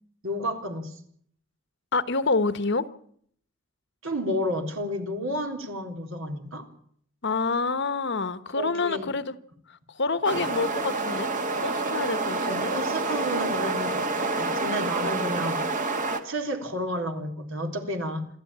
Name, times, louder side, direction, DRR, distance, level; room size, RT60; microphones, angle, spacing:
voice 1, 0.2-1.0 4.0-6.6 8.5-9.1 10.3-10.4 12.5-15.8 16.2-18.3, equal, 70° right, 3.8 m, -31 dB
voice 2, 1.9-2.8 7.2-9.3 9.9-11.3 11.6-12.7, left 3 dB, 60° left, 1.2 m, -27 dB
sound 1, 10.2-16.2, right 3 dB, 40° right, 1.9 m, -28 dB
27.5 x 12.5 x 8.8 m
head